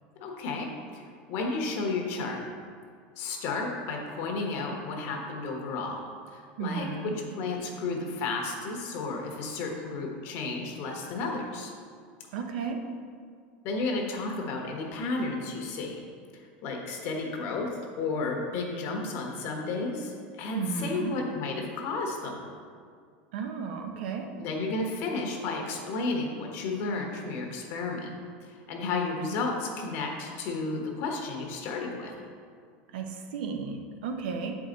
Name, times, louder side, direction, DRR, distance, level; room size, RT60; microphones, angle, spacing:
voice 1, 0.2-2.4 3.2-6.0 6.3-11.7 13.6-16.0 16.3-22.4 24.3-28.2 28.5-32.1, left 3 dB, 50° left, 1 dB, 1.2 m, -32 dB
voice 2, 6.6-7.1 12.3-12.8 20.5-21.1 23.3-24.3 32.9-34.6, right 5 dB, 75° right, 4 dB, 0.8 m, -33 dB
7.6 x 4.9 x 3.9 m, 2.1 s
supercardioid pair, 145°, 5 cm